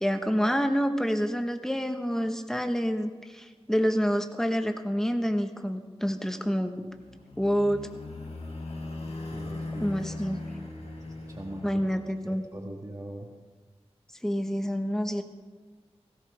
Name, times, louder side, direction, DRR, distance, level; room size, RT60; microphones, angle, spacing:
voice 1, 0.0-6.9 7.4-7.9 9.8-10.4 11.6-12.4 14.2-15.2, equal, 5° left, 6 dB, 1.3 m, -27 dB
sound 1, 6.7-12.4, left 2 dB, 75° left, 3.9 m, -39 dB
voice 2, 9.3-10.0 11.3-11.6 12.2-13.3, right 1 dB, 30° right, 0 dB, 1.6 m, -41 dB
18.0 x 16.0 x 3.5 m, 1.4 s
wide cardioid pair, 65°, 11 cm